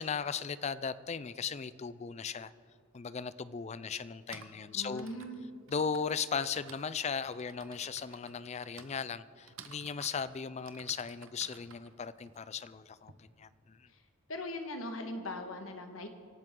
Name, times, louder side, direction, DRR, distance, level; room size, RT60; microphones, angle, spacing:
voice 1, 0.0-2.5 2.9-5.1 5.7-13.9, left 6 dB, 30° left, 16 dB, 0.4 m, -37 dB
Typing, 2.9-3.0 4.0-13.1, right 7 dB, 70° right, 1.0 m, -54 dB
voice 2, 4.7-5.5 13.9-14.0 14.3-16.1, left 1 dB, 80° left, 5 dB, 1.6 m, -40 dB
25.5 x 12.5 x 3.8 m, 2.3 s
head